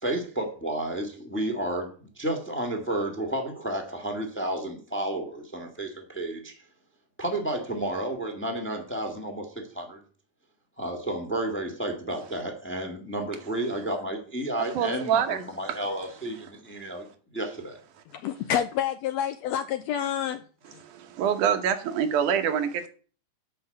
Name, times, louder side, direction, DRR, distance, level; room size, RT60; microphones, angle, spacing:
voice 1, 0.0-6.6 7.2-10.0 10.8-17.1 17.3-17.8, right 1 dB, 5° left, 1.0 m, -31 dB
voice 2, 14.7-15.4 15.7-15.8 20.8-22.9, right 8 dB, 80° right, 2.5 m, -25 dB
voice 3, 18.1-20.4 20.7-20.8, left 9 dB, 80° left, 1.6 m, -28 dB
7.8 x 5.6 x 7.7 m
omnidirectional pair, 3.5 m